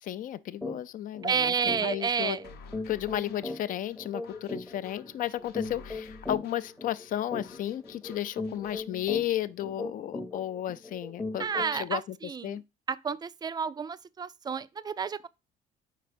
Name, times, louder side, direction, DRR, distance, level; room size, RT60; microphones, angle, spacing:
voice 1, 0.0-2.4 2.9-11.4 11.7-12.6, left 12 dB, 55° left, 0.4 m, -33 dB
sound 1, 0.6-0.8 1.1-1.3 1.7-11.9, left 2 dB, 5° left, 0.7 m, -39 dB
voice 2, 1.2-2.5 11.4-12.6 12.9-15.3, right 6 dB, 25° right, 0.3 m, -30 dB
sound 2, 2.4-8.8, left 5 dB, 75° left, 0.8 m, -52 dB
4.7 x 4.3 x 5.0 m
cardioid pair, 110°, 17 cm